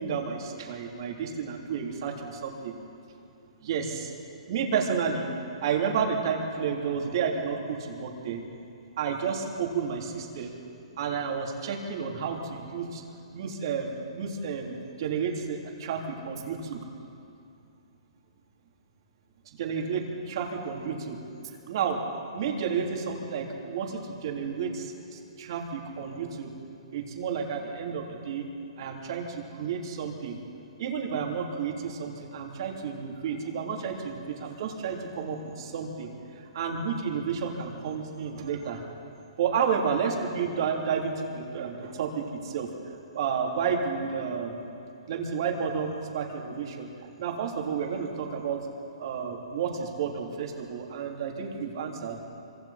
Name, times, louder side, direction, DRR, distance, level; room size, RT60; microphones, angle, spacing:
voice 1, 0.0-2.7 3.6-4.1 4.5-5.3 5.6-8.5 9.0-10.5 11.0-13.0 13.3-16.8 19.4-21.2 21.6-22.0 22.3-26.5 26.9-28.5 28.8-30.4 30.8-38.8 39.4-42.7 43.1-44.6 45.1-46.9 47.2-48.6 49.0-52.2, right 6 dB, 45° right, 0 dB, 3.4 m, -31 dB
25.5 x 24.5 x 4.4 m, 2.6 s
hypercardioid pair, 160°, 3 cm